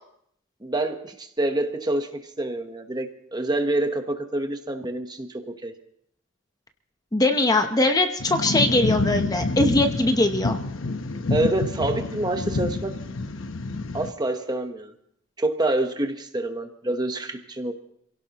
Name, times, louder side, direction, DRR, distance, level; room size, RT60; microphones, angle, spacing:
voice 1, 0.6-2.1 2.4-5.7 11.3-13.0 13.9-14.9 15.4-17.7, right 2 dB, 20° right, 6 dB, 1.1 m, -27 dB
voice 2, 7.1-10.6, left 2 dB, 20° left, 6 dB, 0.9 m, -21 dB
sound 1, 8.2-14.1, left 2 dB, 80° left, 0.9 m, -28 dB
27.5 x 17.0 x 3.0 m, 0.69 s
head